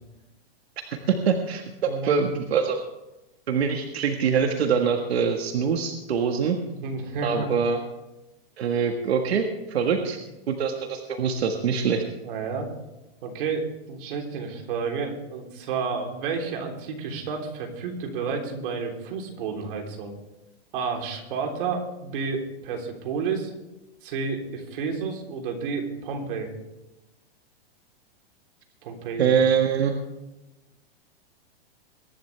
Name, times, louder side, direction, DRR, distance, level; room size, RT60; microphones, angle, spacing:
voice 1, 1.1-2.8 3.5-6.6 7.2-7.8 8.6-10.2 10.5-12.0 29.2-29.9, right 6 dB, 90° right, 4 dB, 1.7 m, -24 dB
voice 2, 1.9-2.3 6.4-7.5 9.8-10.1 12.2-12.7 13.2-20.1 20.7-23.5 24.0-26.5 28.8-29.3, right 5 dB, 60° right, 2 dB, 3.6 m, -31 dB
22.5 x 11.0 x 3.4 m, 0.99 s
supercardioid pair, 155°, 31 cm